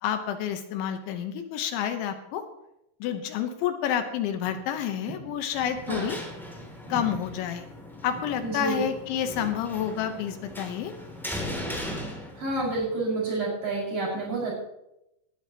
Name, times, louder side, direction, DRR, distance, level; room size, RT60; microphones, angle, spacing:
voice 1, 0.0-2.4 3.0-6.2 6.9-7.7 8.0-10.9, left 9 dB, 75° left, 7 dB, 3.3 m, -29 dB
sound 1, 5.5-12.8, left 1 dB, ahead, 1.4 m, -38 dB
voice 2, 8.4-8.9 12.4-14.5, right 3 dB, 25° right, -4 dB, 6.9 m, -29 dB
19.5 x 13.0 x 3.1 m, 0.82 s
omnidirectional pair, 5.9 m